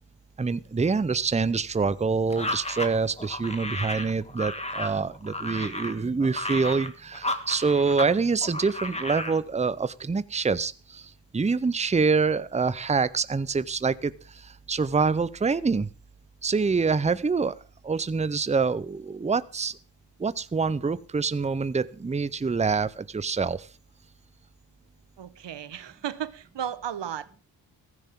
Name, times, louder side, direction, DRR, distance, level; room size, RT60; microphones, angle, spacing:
voice 1, 0.4-15.9 16.4-17.6 17.8-19.8 20.2-23.7, right 4 dB, 15° right, 0.6 m, -26 dB
sound 1, 2.3-8.1 8.4-9.4, left 1 dB, 15° left, 1.9 m, -33 dB
voice 2, 25.2-27.4, right 9 dB, 70° right, 1.1 m, -34 dB
15.5 x 14.5 x 3.7 m
cardioid pair, 75°, 45 cm